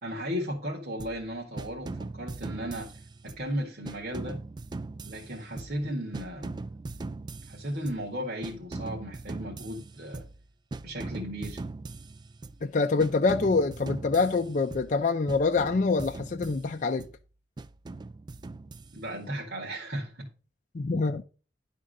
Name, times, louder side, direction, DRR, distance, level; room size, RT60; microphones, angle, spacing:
voice 1, 0.0-2.9 3.2-4.4 5.0-6.6 7.5-10.2 10.8-11.6 18.9-20.3, equal, 60° right, 1.9 m, -35 dB
sound 1, 1.0-1.3 1.6-3.5 3.8-5.9 6.1-8.1 8.4-10.4 10.7-12.7 13.0-15.0 15.3-17.2 17.6-19.2, right 3 dB, 25° right, 0.3 m, -40 dB
voice 2, 12.6-17.1 20.7-21.2, left 4 dB, 45° left, 0.5 m, -25 dB
11.0 x 3.7 x 6.5 m
head